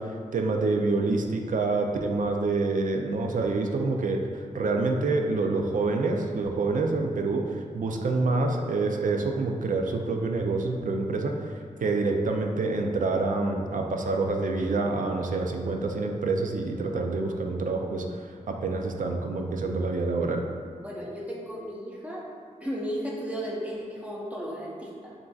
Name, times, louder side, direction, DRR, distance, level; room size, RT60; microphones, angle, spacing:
voice 1, 0.0-20.4, right 3 dB, 65° right, 3 dB, 0.4 m, -27 dB
voice 2, 20.8-22.2 22.6-25.1, equal, 10° right, -4 dB, 0.7 m, -34 dB
7.2 x 2.6 x 2.3 m, 2.1 s
wide cardioid pair, 130°, 14 cm